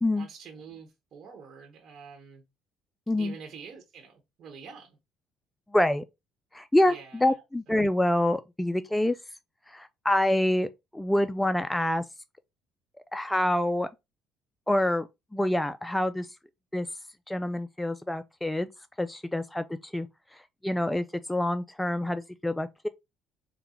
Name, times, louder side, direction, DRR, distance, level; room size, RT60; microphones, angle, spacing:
voice 1, 0.1-2.4 3.2-5.0 6.9-7.7, right 6 dB, 55° right, 1.1 m, -47 dB
voice 2, 5.7-6.0 6.5-9.2 9.7-12.0 13.1-13.9 14.7-15.1 15.3-16.3 16.7-16.9 17.3-18.7 19.0-19.6 19.9-20.1 20.3-22.9, left 1 dB, 5° left, 0.3 m, -26 dB
3.8 x 2.2 x 4.2 m
cardioid pair, 100°, 0 cm